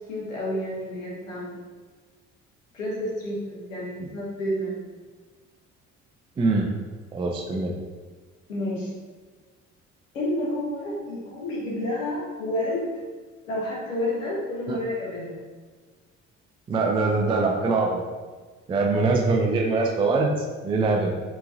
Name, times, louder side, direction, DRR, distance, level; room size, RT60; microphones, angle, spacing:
voice 1, 0.1-1.6 2.7-4.9 8.5-8.9 10.1-12.9 13.5-15.4, left 1 dB, 80° left, -5 dB, 1.0 m, -30 dB
voice 2, 6.4-6.7 7.1-7.7 14.7-14.8 16.7-18.0 18.7-20.4 20.6-21.1, right 3 dB, 15° right, 0 dB, 0.3 m, -23 dB
4.5 x 3.0 x 2.5 m, 1.4 s
figure-of-eight pair, 50°, 39 cm